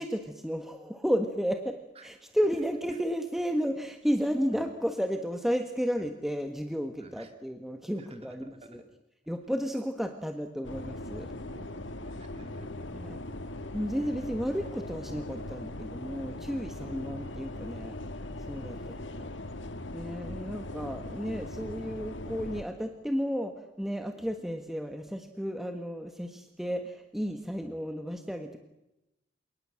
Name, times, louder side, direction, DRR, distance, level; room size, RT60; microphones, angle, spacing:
voice 1, 0.0-1.8 2.0-8.8 9.3-11.3 12.9-13.2 13.7-17.9 18.4-19.3 19.9-28.6, equal, ahead, 5 dB, 1.4 m, -33 dB
voice 2, 2.6-3.0 4.5-4.7 6.0-6.1 7.0-7.3 8.0-8.9 10.0-10.1 11.5-12.9 13.8-14.4 18.6-19.2 20.4-20.5 24.2-24.3 27.6-27.8, right 1 dB, 30° right, 7 dB, 2.6 m, -52 dB
sound 1, 10.6-22.6, left 1 dB, 75° left, 1.5 m, -40 dB
27.5 x 19.5 x 7.7 m, 0.90 s
head